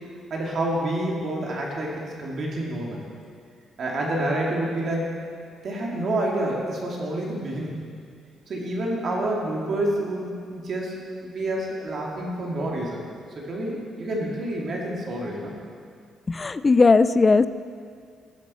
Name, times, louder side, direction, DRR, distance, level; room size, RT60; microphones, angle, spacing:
voice 1, 0.3-3.0 3.8-5.1 5.6-7.8 8.5-13.0 13.4-15.5, right 1 dB, 40° right, -2 dB, 2.2 m, -28 dB
voice 2, 16.3-17.5, left 4 dB, 20° left, 14 dB, 0.3 m, -17 dB
16.0 x 12.5 x 4.2 m, 2.2 s
cardioid pair, 165°, 0 cm